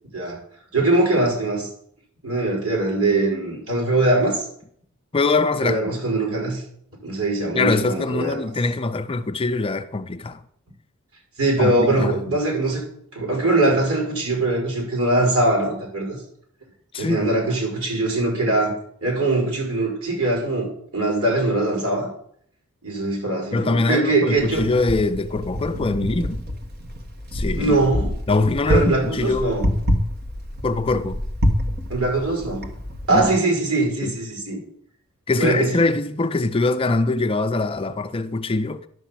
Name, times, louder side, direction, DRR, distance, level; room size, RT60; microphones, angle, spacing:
voice 1, 0.7-1.7 2.2-4.4 5.6-6.6 7.0-8.4 11.4-12.8 13.1-16.2 16.9-18.8 19.0-22.1 22.8-24.6 27.5-28.1 28.7-29.7 31.9-32.7 33.1-34.6 35.4-35.8, right 2 dB, 80° right, 5.1 m, -22 dB
voice 2, 5.1-5.8 7.5-10.4 11.6-12.4 16.9-17.3 23.5-26.4 27.3-27.8 28.3-29.6 30.6-31.2 33.1-33.3 34.0-34.1 35.3-38.9, left 3 dB, 25° left, 0.5 m, -23 dB
Wind, 24.4-33.3, equal, 45° right, 1.5 m, -27 dB
11.0 x 5.9 x 7.4 m
head